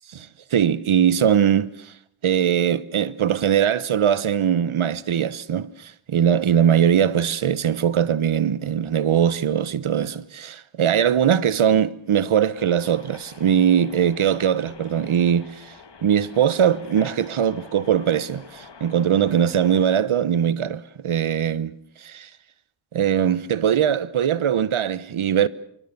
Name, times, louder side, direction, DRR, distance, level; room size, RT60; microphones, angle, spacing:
voice 1, 0.2-1.9 2.2-15.7 16.0-21.8 22.0-22.3 22.9-25.5, right 9 dB, 85° right, 1.1 m, -21 dB
sound 1, 12.5-19.9, left 5 dB, 60° left, 2.2 m, -46 dB
25.5 x 24.0 x 6.8 m
wide cardioid pair, 85°, 48 cm